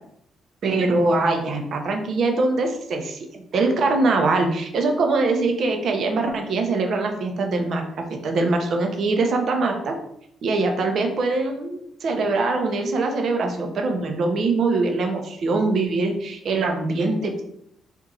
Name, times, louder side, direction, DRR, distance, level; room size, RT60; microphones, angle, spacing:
voice 1, 0.6-3.2 3.5-9.9 10.4-17.4, right 3 dB, 60° right, 3 dB, 0.9 m, -23 dB
4.5 x 2.7 x 3.8 m, 0.73 s
cardioid pair, 90°, 0 cm